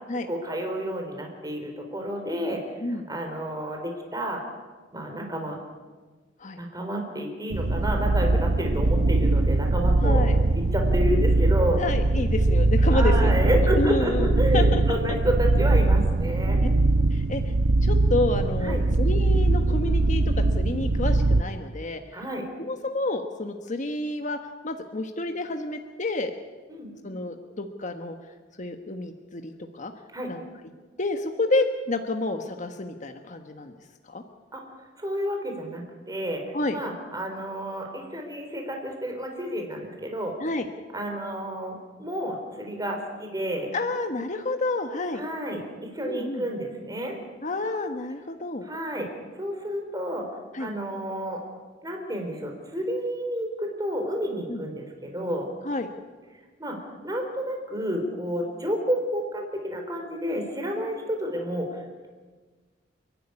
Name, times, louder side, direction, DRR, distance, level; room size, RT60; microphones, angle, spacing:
voice 1, 0.3-2.6 3.1-4.4 4.9-5.6 6.6-10.4 10.7-11.8 12.9-16.6 18.6-18.8 22.1-22.5 26.7-26.9 30.1-30.3 34.5-34.6 35.0-36.4 36.7-40.3 40.9-43.7 45.1-47.2 48.6-49.1 49.4-50.3 50.6-51.4 51.8-55.5 56.6-62.1, equal, 20° right, 2 dB, 4.0 m, -30 dB
sound 1, 7.5-21.4, right 2 dB, 80° right, 0.8 m, -21 dB
voice 2, 10.0-10.4 11.7-13.3 13.7-15.2 17.1-17.5 17.8-22.2 22.6-26.3 27.0-28.2 28.6-29.9 30.3-30.4 31.0-33.7 34.1-34.2 36.5-36.8 40.4-40.7 43.7-45.2 46.0-46.4 47.4-48.7 50.5-50.7 54.5-54.6 55.6-55.9, left 2 dB, 40° left, 5 dB, 1.2 m, -29 dB
29.5 x 11.0 x 9.8 m, 1.4 s
head